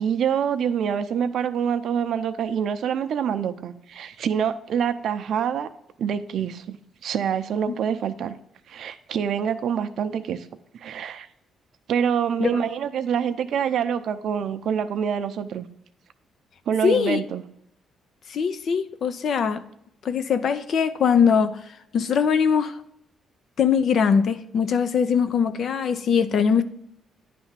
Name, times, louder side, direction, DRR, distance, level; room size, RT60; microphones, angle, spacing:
voice 1, 0.0-5.7 6.0-6.8 7.0-8.4 8.7-10.5 10.7-11.3 11.9-15.6 16.7-17.4, right 8 dB, 70° right, 0.5 m, -26 dB
voice 2, 16.8-17.2 18.3-19.6 20.0-21.6 21.9-22.8 23.6-26.6, left 6 dB, 60° left, 0.6 m, -21 dB
9.9 x 3.4 x 5.7 m
cardioid pair, 90°, 0 cm